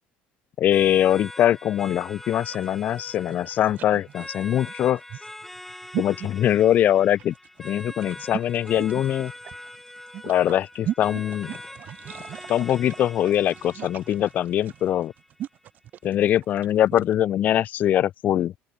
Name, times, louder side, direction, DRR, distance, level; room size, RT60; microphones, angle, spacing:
voice 1, 0.6-5.0 6.0-9.3 10.2-11.5 12.5-15.1 16.0-18.5, left 11 dB, 45° left, 0.5 m, -22 dB
sound 1, 0.7-15.7, left 1 dB, 5° left, 0.9 m, -43 dB
sound 2, 2.4-17.1, right 11 dB, 45° right, 1.0 m, -38 dB
open air
cardioid pair, 150°, 4 cm